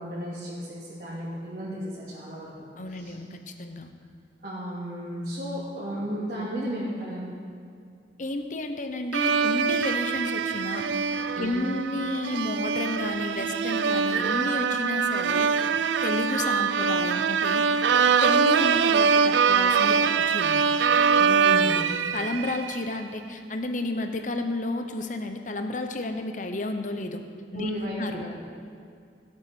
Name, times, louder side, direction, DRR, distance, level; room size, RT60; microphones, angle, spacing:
voice 1, 0.0-2.5 2.9-3.1 4.4-7.3 11.3-11.6 21.2-21.9 27.5-28.4, equal, 50° right, -9 dB, 2.8 m, -34 dB
voice 2, 2.8-3.9 8.2-10.8 11.4-15.5 16.0-17.7 18.2-20.7 22.1-27.2 27.5-27.7 28.0-28.2, left 2 dB, 45° left, 6 dB, 1.0 m, -31 dB
sound 1, 9.1-22.8, right 6 dB, 85° right, 0.4 m, -23 dB
16.0 x 8.5 x 6.1 m, 2.4 s
head